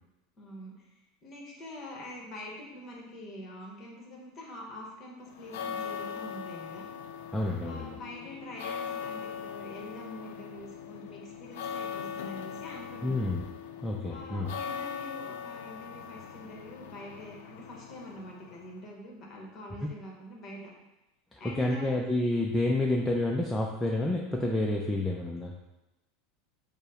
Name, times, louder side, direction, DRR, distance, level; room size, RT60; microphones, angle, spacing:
voice 1, 0.4-6.9 7.6-13.3 14.1-20.7 21.4-21.9, left 1 dB, 25° left, -1 dB, 1.1 m, -45 dB
sound 1, 5.3-18.8, left 7 dB, 80° left, 0.4 m, -40 dB
voice 2, 7.3-8.0 13.0-13.4 13.8-14.5 19.8-19.9 21.3-25.5, left 1 dB, 5° left, -2 dB, 0.3 m, -29 dB
5.3 x 2.0 x 4.8 m, 1.0 s
supercardioid pair, 155°, 0 cm